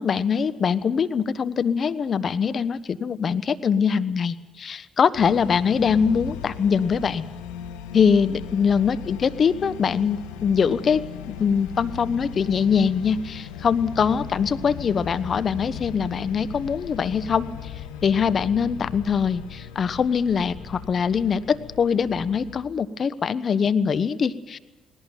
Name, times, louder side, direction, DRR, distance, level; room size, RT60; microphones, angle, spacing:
voice 1, 0.0-7.2 7.9-17.7 18.0-24.6, left 6 dB, 50° left, 15 dB, 1.1 m, -23 dB
sound 1, 5.2-22.6, left 8 dB, 85° left, 1.4 m, -38 dB
19.0 x 17.5 x 9.2 m, 1.2 s
hypercardioid pair, 55°, 0 cm